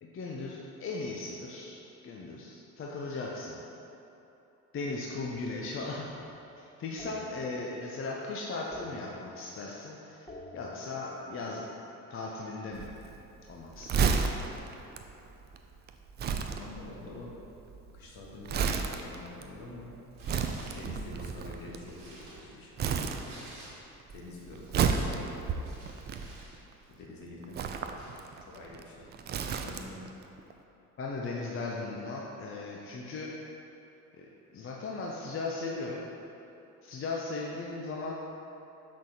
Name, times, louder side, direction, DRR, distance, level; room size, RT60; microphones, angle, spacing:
voice 1, 0.0-3.6 4.7-6.1 6.6-11.7 12.1-12.9 13.5-14.3 31.0-33.3 34.2-34.3 34.5-36.1 36.8-38.1, left 3 dB, 30° left, -2 dB, 0.7 m, -37 dB
sound 1, 5.7-6.4 7.0-8.1 8.4-9.9 10.1-12.5 13.7-15.4, left 1 dB, 10° left, 1.2 m, -51 dB
Crumpling crinkling, 12.7-22.4 22.8-23.7 24.0-26.7 27.4-30.1 30.4-30.5, right 5 dB, 25° right, 0.3 m, -32 dB
voice 2, 16.6-17.3 17.9-19.9 20.7-23.3 24.1-25.6 27.0-27.7 28.4-29.1 29.6-30.0, left 2 dB, 50° left, -3 dB, 1.5 m, -47 dB
Tearing, 20.1-20.9 21.5-24.1 24.4-26.5 26.8-27.0 27.6-28.7 29.5-29.8, right 1 dB, 75° right, 1.5 m, -52 dB
6.4 x 5.9 x 2.8 m, 3.0 s
figure-of-eight pair, 55°, 44 cm